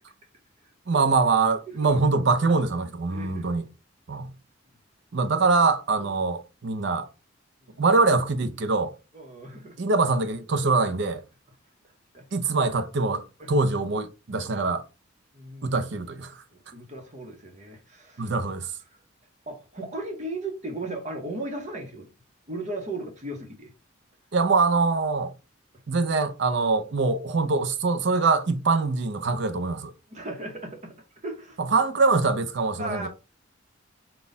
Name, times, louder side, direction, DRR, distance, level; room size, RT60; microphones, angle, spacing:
voice 1, 0.9-3.7 4.1-4.3 5.1-7.1 7.8-8.9 9.8-11.2 12.3-14.8 15.6-16.4 18.2-18.7 24.3-25.3 25.9-29.9 31.6-33.1, right 3 dB, 60° right, 0.5 m, -23 dB
voice 2, 3.1-3.4 6.0-6.2 9.1-9.8 12.1-12.2 15.3-15.7 16.7-18.3 19.5-22.1 22.5-23.7 30.1-30.9 31.2-31.6 32.8-33.1, right 2 dB, 35° right, 0.9 m, -36 dB
4.1 x 2.3 x 3.8 m
head